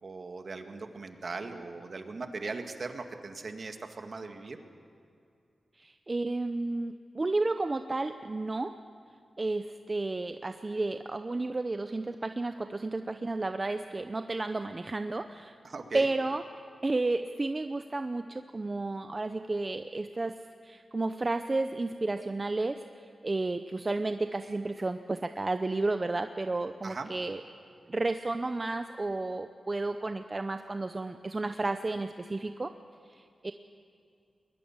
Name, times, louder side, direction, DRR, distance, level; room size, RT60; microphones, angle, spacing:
voice 1, 0.0-4.6 15.6-16.1 26.8-27.1, right 3 dB, 55° right, 6 dB, 1.9 m, -39 dB
voice 2, 5.8-8.7 9.4-15.6 15.9-16.4 16.8-20.4 20.6-27.4 27.9-32.7 33.1-33.5, right 2 dB, 30° right, 8 dB, 0.7 m, -32 dB
21.5 x 21.0 x 7.3 m, 2.4 s
wide cardioid pair, 85°, 0 cm